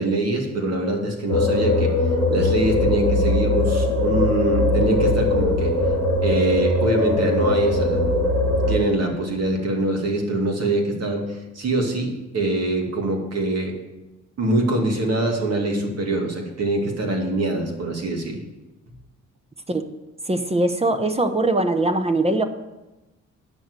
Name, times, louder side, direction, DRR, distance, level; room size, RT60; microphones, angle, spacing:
voice 1, 0.0-1.9 2.3-5.7 6.2-8.0 8.7-13.7 14.4-18.4, right 2 dB, 55° right, 2 dB, 2.5 m, -24 dB
sound 1, 1.3-8.8, left 1 dB, 75° right, 3.3 m, -20 dB
voice 2, 20.3-22.4, right 2 dB, 20° right, 8 dB, 0.9 m, -21 dB
9.1 x 6.4 x 8.1 m, 1.0 s
cardioid pair, 90°, 30 cm